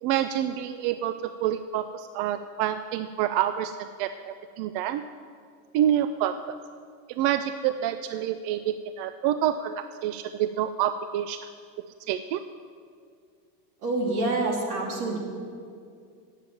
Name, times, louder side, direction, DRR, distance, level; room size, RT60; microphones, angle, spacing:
voice 1, 0.0-5.0 5.7-6.6 7.1-11.4 12.1-12.4, right 11 dB, 65° right, 11 dB, 0.5 m, -27 dB
voice 2, 13.8-15.2, right 2 dB, 85° right, 1 dB, 2.3 m, -27 dB
9.0 x 7.4 x 7.6 m, 2.3 s
supercardioid pair, 110°, 44 cm